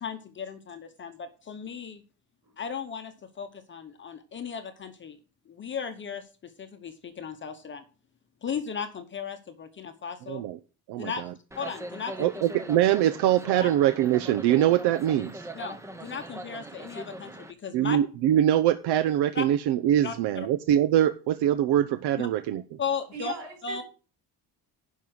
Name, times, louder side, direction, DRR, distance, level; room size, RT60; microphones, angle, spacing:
voice 1, 0.0-2.0 2.6-5.2 5.5-7.8 8.4-10.4 11.0-11.3 11.5-12.3 13.6-13.7 15.5-18.0 19.3-19.5 20.0-20.5 22.2-22.3 22.8-23.3 23.6-23.8, left 6 dB, 30° left, 7 dB, 0.9 m, -36 dB
voice 2, 10.3-10.6 10.9-11.3 12.2-15.5 17.7-22.8, right 11 dB, 75° right, 12 dB, 0.7 m, -23 dB
sound 1, 11.5-17.5, right 1 dB, 5° right, 0.7 m, -41 dB
voice 3, 23.1-23.8, right 4 dB, 45° right, 1 dB, 5.7 m, -38 dB
10.5 x 5.6 x 6.2 m, 0.35 s
cardioid pair, 170°, 40 cm